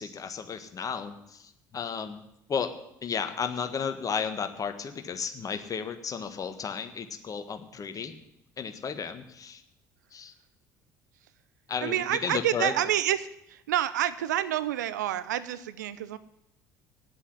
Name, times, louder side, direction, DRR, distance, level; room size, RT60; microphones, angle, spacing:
voice 1, 0.0-2.2 2.5-2.7 3.0-8.1 8.6-9.6 10.1-10.3 11.7-12.7, left 6 dB, 40° left, 8 dB, 1.6 m, -33 dB
voice 2, 11.8-16.2, right 12 dB, 80° right, 15 dB, 0.6 m, -28 dB
10.0 x 8.1 x 9.8 m, 0.83 s
hypercardioid pair, 60°, 9 cm